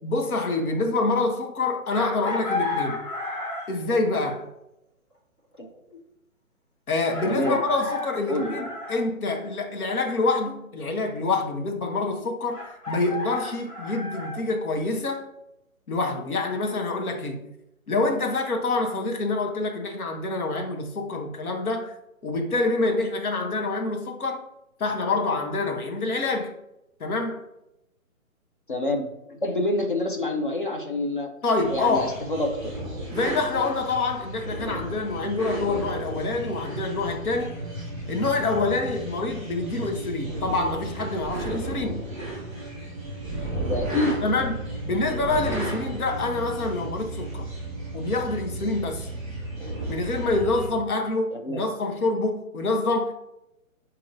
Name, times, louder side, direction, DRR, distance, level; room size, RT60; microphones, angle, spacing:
voice 1, 0.0-3.0 3.7-4.5 6.9-12.6 12.9-15.3 15.9-17.5 17.9-21.9 22.2-24.4 24.8-26.5 27.0-27.4 31.4-32.2 33.1-37.6 38.1-42.0 44.2-47.5 47.9-49.1 49.9-53.1, left 3 dB, 80° left, 1.0 m, -26 dB
Chicken rooster, 1.9-3.8 5.5-5.6 7.1-9.0 12.5-14.4, left 3 dB, 20° left, 1.5 m, -32 dB
voice 2, 7.3-7.6 8.3-8.6 28.7-31.3 31.7-32.7 43.7-44.2 51.3-51.6, left 1 dB, 40° left, 0.5 m, -27 dB
sound 1, 31.6-50.7, right 1 dB, 5° right, 1.2 m, -34 dB
5.1 x 2.9 x 2.6 m
hypercardioid pair, 165°, 43 cm